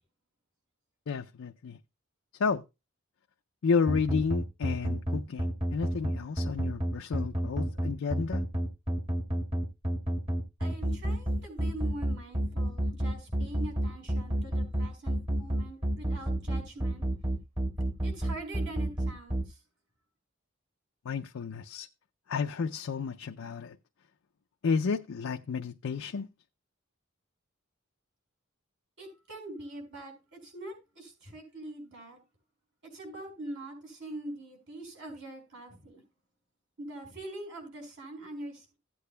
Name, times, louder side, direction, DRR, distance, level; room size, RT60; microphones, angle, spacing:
voice 1, 1.1-1.8 2.4-2.6 3.6-8.4 21.0-21.9 22.3-23.8 24.6-26.3, left 5 dB, 70° left, 0.4 m, -31 dB
sound 1, 3.9-19.4, right 1 dB, 30° right, 1.8 m, -29 dB
voice 2, 10.6-17.0 18.0-19.6 29.0-32.2 32.9-36.0 36.8-38.8, right 1 dB, 60° right, 5.2 m, -43 dB
15.5 x 8.5 x 2.2 m
head